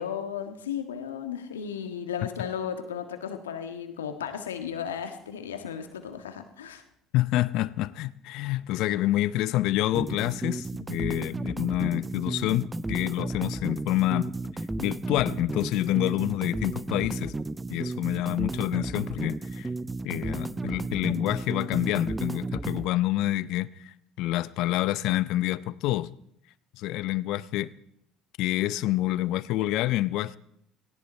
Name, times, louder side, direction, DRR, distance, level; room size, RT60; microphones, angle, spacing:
voice 1, 0.0-6.8, left 8 dB, 90° left, 1.6 m, -35 dB
voice 2, 7.1-14.3 14.8-17.3 17.7-19.7 20.0-26.1 26.8-27.7 28.4-30.4, left 16 dB, 65° left, 0.6 m, -27 dB
sound 1, 10.0-22.9, right 2 dB, 15° right, 0.7 m, -33 dB
18.5 x 17.5 x 4.4 m
hypercardioid pair, 65°, 0 cm